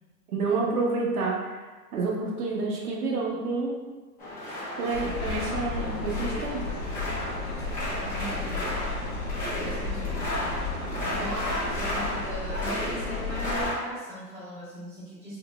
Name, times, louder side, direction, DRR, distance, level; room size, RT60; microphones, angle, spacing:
voice 1, 0.3-3.8 4.8-6.7 11.2-11.3, right 3 dB, 70° right, -2 dB, 0.8 m, -29 dB
sound 1, 4.2-13.8, left 1 dB, 15° left, 1.0 m, -34 dB
sound 2, 4.9-13.7, left 3 dB, 70° left, 0.9 m, -33 dB
voice 2, 7.9-8.8 9.6-10.5 10.8-15.4, equal, 5° right, -12 dB, 1.2 m, -38 dB
3.9 x 2.7 x 2.2 m, 1.3 s
hypercardioid pair, 150°, 46 cm